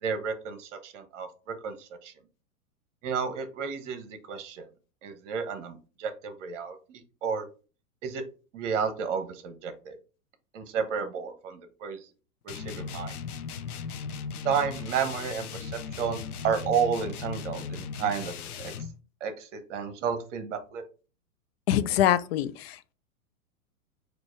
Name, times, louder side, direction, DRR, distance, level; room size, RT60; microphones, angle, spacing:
voice 1, 0.0-2.1 3.0-4.7 5.0-7.5 8.0-8.2 8.5-10.0 10.5-12.1 12.4-13.1 14.4-18.7 19.2-20.8, right 6 dB, 55° right, 1.1 m, -32 dB
sound 1, 12.5-19.0, left 6 dB, 90° left, 0.6 m, -37 dB
voice 2, 21.7-22.9, left 12 dB, 45° left, 0.5 m, -25 dB
4.4 x 2.6 x 4.4 m
hypercardioid pair, 120°, 43 cm